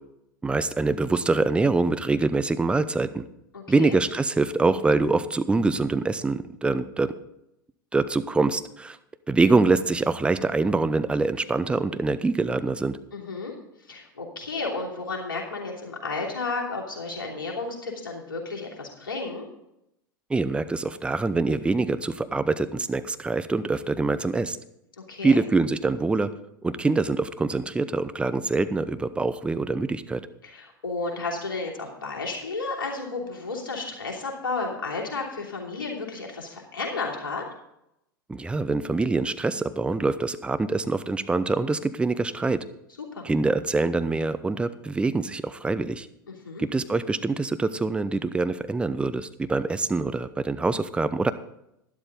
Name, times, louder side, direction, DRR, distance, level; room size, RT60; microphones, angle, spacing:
voice 1, 0.4-3.2 3.7-7.1 7.9-9.0 9.3-13.0 20.3-24.6 25.2-26.3 26.6-30.3 38.3-42.6 43.2-46.1 46.6-51.3, right 3 dB, 10° right, 12 dB, 0.6 m, -24 dB
voice 2, 3.5-3.9 13.1-13.5 13.9-19.4 25.1-25.4 30.4-37.4 43.0-43.2 46.3-46.6, left 3 dB, 70° left, -1 dB, 3.0 m, -32 dB
12.0 x 11.5 x 4.0 m, 0.82 s
figure-of-eight pair, 85°, 12 cm